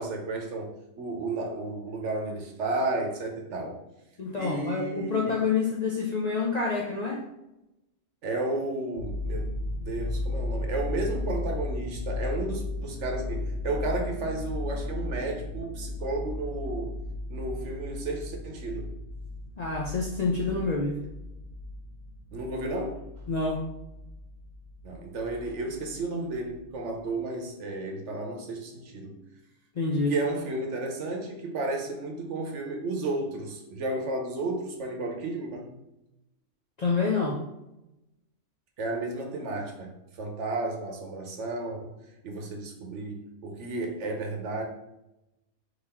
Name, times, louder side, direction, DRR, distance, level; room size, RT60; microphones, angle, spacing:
voice 1, 0.0-3.8 4.3-5.4 8.2-9.5 9.9-17.0 17.3-18.9 22.3-23.0 24.8-29.1 30.1-35.7 38.8-39.9 40.2-44.6, right 2 dB, 65° right, 2 dB, 1.1 m, -33 dB
voice 2, 4.2-7.2 19.6-21.0 23.3-23.6 29.8-30.1 36.8-37.4, left 4 dB, 50° left, -3 dB, 0.5 m, -27 dB
sound 1, 9.0-26.0 26.3-26.6, left 2 dB, 70° left, 1.0 m, -35 dB
3.9 x 2.9 x 4.2 m, 0.91 s
omnidirectional pair, 1.4 m